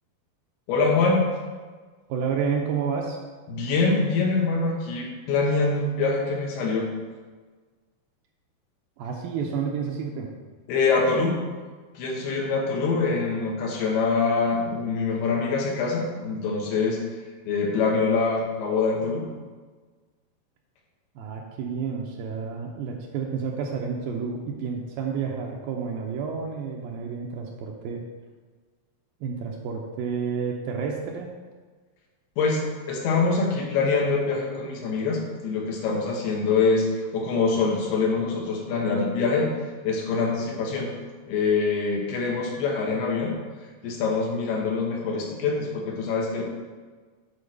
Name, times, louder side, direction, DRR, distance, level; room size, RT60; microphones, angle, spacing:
voice 1, 0.7-1.2 3.5-6.9 10.7-11.4 11.9-17.0 17.5-19.2 32.4-39.5 39.8-40.9 41.3-43.3 43.8-46.4, left 4 dB, 85° left, -1 dB, 3.3 m, -24 dB
voice 2, 2.1-3.2 9.0-10.3 21.2-28.0 29.2-31.3, right 6 dB, 75° right, 0 dB, 2.3 m, -30 dB
8.6 x 4.3 x 6.5 m, 1.4 s
omnidirectional pair, 4.5 m